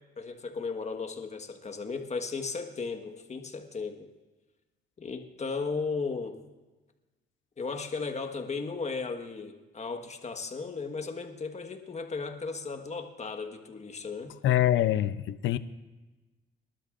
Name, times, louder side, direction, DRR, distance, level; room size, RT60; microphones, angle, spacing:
voice 1, 0.2-4.1 5.0-6.4 7.6-14.4, left 4 dB, 35° left, 5 dB, 1.5 m, -35 dB
voice 2, 14.4-15.6, left 12 dB, 75° left, 14 dB, 0.7 m, -24 dB
25.0 x 12.0 x 2.6 m, 1.2 s
cardioid pair, 90°, 20 cm